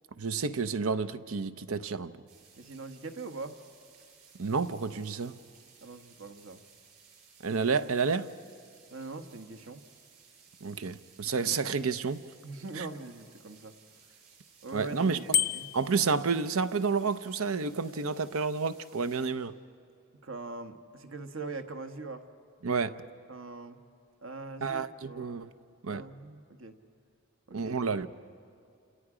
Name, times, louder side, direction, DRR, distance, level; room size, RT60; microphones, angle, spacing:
voice 1, 0.2-2.1 4.4-5.4 7.4-8.3 10.6-12.2 12.7-12.9 14.7-15.2 15.7-19.5 22.6-23.0 24.6-25.5 25.8-26.0 27.5-28.1, right 5 dB, 85° right, 0.7 m, -30 dB
sound 1, 2.3-19.3, right 6 dB, 50° right, 7.3 m, -59 dB
voice 2, 2.6-3.6 5.8-6.6 8.9-9.8 12.4-13.7 14.6-15.7 20.2-22.3 23.3-23.8 24.2-25.4 25.9-26.8 27.5-27.7, right 3 dB, 70° right, 1.3 m, -42 dB
Bicycle bell, 15.3-15.9, left 8 dB, 45° left, 0.5 m, -28 dB
28.5 x 28.0 x 5.0 m
head